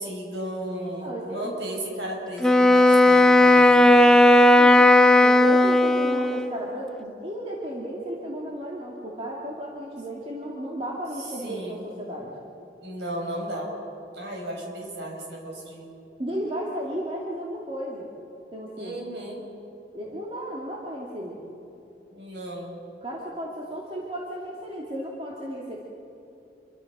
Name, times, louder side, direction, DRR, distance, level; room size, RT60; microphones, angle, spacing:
voice 1, 0.0-4.0 11.2-11.8 12.8-13.7 14.1-16.0 18.8-19.4 22.1-22.8, right 1 dB, 75° right, -1 dB, 6.3 m, -34 dB
voice 2, 1.0-1.5 4.6-4.8 5.2-12.3 16.2-18.1 18.5-19.0 19.9-21.4 23.0-25.8, equal, 30° right, -3 dB, 2.6 m, -34 dB
Wind instrument woodwind instrument, 2.4-6.6, left 1 dB, 5° left, 0.7 m, -15 dB
28.0 x 24.0 x 6.2 m, 2.9 s
head